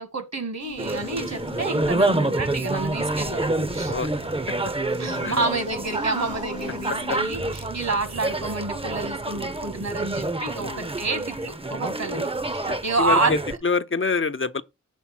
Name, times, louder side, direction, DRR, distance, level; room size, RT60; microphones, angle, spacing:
voice 1, 0.0-3.9 5.0-7.4 7.7-13.3, right 3 dB, 60° right, 1.7 m, -29 dB
sound 1, 0.6-4.6 4.9-7.4, left 5 dB, 75° left, 1.0 m, -41 dB
sound 2, 0.8-13.6, right 2 dB, 20° right, 0.7 m, -28 dB
sound 3, 3.4-11.4, right 2 dB, 85° right, 2.4 m, -44 dB
voice 2, 12.7-14.6, left 4 dB, 45° left, 0.6 m, -27 dB
7.3 x 3.6 x 6.0 m
wide cardioid pair, 50°, 30 cm